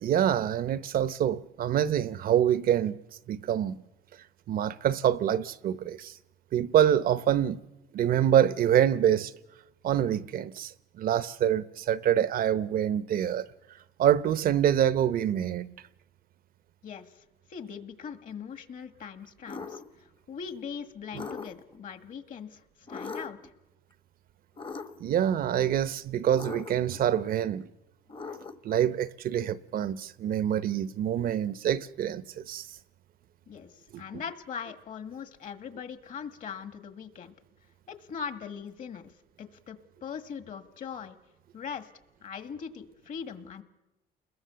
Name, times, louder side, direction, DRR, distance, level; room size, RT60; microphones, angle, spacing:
voice 1, 0.0-3.0 3.3-3.8 4.5-6.1 6.5-7.6 7.9-9.3 9.8-13.5 14.0-15.7 25.0-27.7 28.6-32.7 33.9-34.0, right 10 dB, 60° right, 0.9 m, -26 dB
voice 2, 16.8-17.2 17.5-22.6 22.9-23.4 33.5-37.3 37.9-39.1 39.4-41.2 41.5-41.9 42.2-43.6, left 7 dB, 50° left, 1.8 m, -40 dB
sound 1, 19.5-19.9 21.1-21.8 22.9-23.5 24.6-25.2 26.3-27.0 28.1-28.8, left 4 dB, 30° left, 1.1 m, -40 dB
29.5 x 21.0 x 6.9 m
cardioid pair, 110°, 17 cm